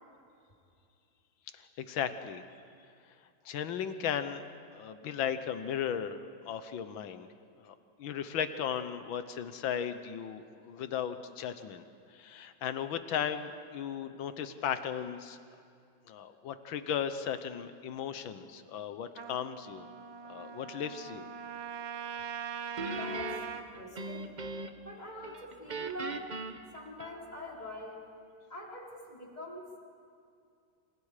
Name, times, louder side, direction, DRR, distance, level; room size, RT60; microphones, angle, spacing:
voice 1, 1.5-2.4 3.5-4.4 4.7-7.3 7.6-11.9 12.1-15.4 16.1-19.9 20.3-21.3, left 8 dB, 90° left, 10 dB, 1.8 m, -36 dB
Trumpet, 19.2-23.7, right 8 dB, 70° right, 1.8 m, -41 dB
voice 2, 22.8-24.3 24.8-26.3 26.7-28.1 28.5-29.7, left 1 dB, 20° left, -2 dB, 4.1 m, -44 dB
Guitar, 22.8-24.9 25.2-27.5, right 2 dB, 35° right, 0.8 m, -40 dB
27.5 x 27.0 x 5.0 m, 2.4 s
omnidirectional pair, 2.1 m